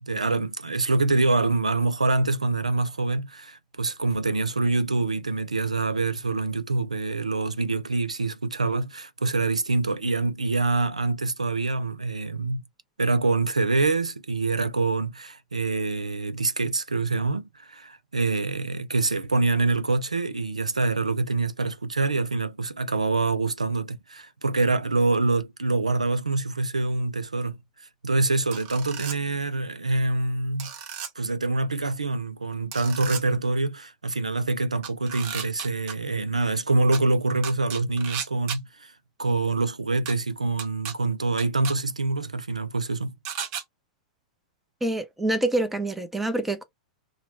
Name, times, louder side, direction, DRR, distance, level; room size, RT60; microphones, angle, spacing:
voice 1, 0.0-12.6 13.0-30.7 31.2-38.9 39.2-43.1, right 3 dB, 85° right, 0.4 m, -25 dB
sound 1, 28.5-29.2 30.6-31.1 32.7-33.2 34.8-35.9 36.9-37.0 37.4-38.6 40.1-40.2 40.6-40.9 41.4-41.7 43.2-43.6, right 8 dB, 45° right, 0.7 m, -34 dB
voice 2, 44.8-46.6, right 1 dB, 5° right, 0.6 m, -26 dB
2.9 x 2.2 x 2.8 m
figure-of-eight pair, 95°, 4 cm